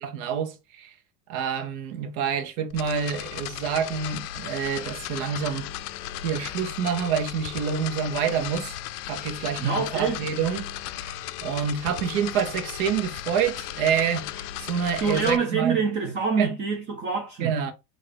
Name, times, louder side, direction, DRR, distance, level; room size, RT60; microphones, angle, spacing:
voice 1, 0.0-0.9 1.3-5.7 6.2-8.7 9.1-10.7 11.0-11.1 11.4-15.8 16.4-16.5 17.4-17.7, right 7 dB, 65° right, 0.9 m, -27 dB
sound 1, 2.7-15.4, left 12 dB, 80° left, 0.5 m, -36 dB
voice 2, 9.6-10.2 15.0-17.6, right 5 dB, 25° right, 0.4 m, -26 dB
3.6 x 2.7 x 3.3 m
supercardioid pair, 150°, 47 cm